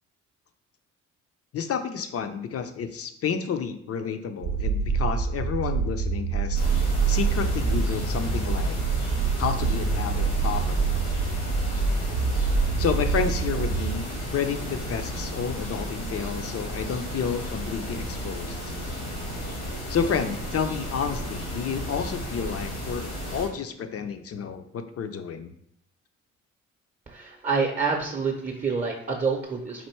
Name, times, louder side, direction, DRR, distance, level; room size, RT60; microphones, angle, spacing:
voice 1, 1.5-6.6 7.1-8.8 9.4-10.9 12.8-18.7 19.9-25.5, left 7 dB, 50° left, 9 dB, 0.6 m, -30 dB
sound 1, 4.4-14.0, right 5 dB, 70° right, 0.6 m, -26 dB
sound 2, 6.5-23.5, equal, 90° left, 1.8 m, -33 dB
voice 2, 27.1-29.9, right 4 dB, 25° right, 0 dB, 0.7 m, -27 dB
4.3 x 2.6 x 4.4 m, 0.72 s
cardioid pair, 90°, 30 cm